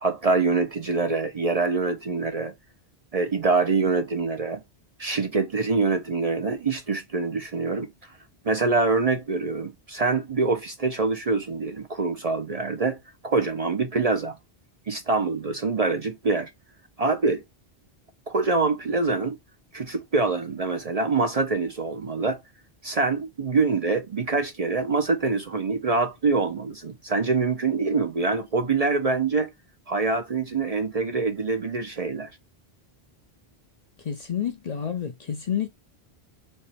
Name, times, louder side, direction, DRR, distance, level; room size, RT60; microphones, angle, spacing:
voice 1, 0.0-2.5 3.1-4.6 5.0-7.9 8.4-13.0 13.2-14.4 14.9-16.5 17.0-17.4 18.3-19.4 19.7-22.4 22.8-29.5 29.9-32.3, right 4 dB, 45° right, 0.6 m, -25 dB
voice 2, 34.0-35.7, left 8 dB, 45° left, 0.6 m, -29 dB
3.4 x 2.9 x 4.1 m
omnidirectional pair, 1.1 m